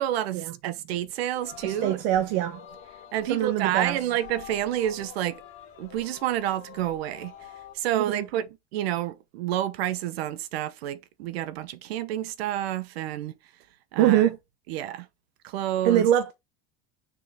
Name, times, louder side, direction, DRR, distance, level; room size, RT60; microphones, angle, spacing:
voice 1, 0.0-2.0 3.1-5.4 5.8-7.3 7.7-13.3 13.9-14.3 14.7-15.1 15.4-16.1, right 12 dB, 90° right, 1.0 m, -29 dB
Singing, 1.3-7.8, left 10 dB, 40° left, 2.1 m, -47 dB
voice 2, 1.6-2.6 3.3-4.0 7.9-8.3 14.0-14.4 15.8-16.3, right 11 dB, 65° right, 1.2 m, -23 dB
6.9 x 3.7 x 3.7 m
supercardioid pair, 150°, 30 cm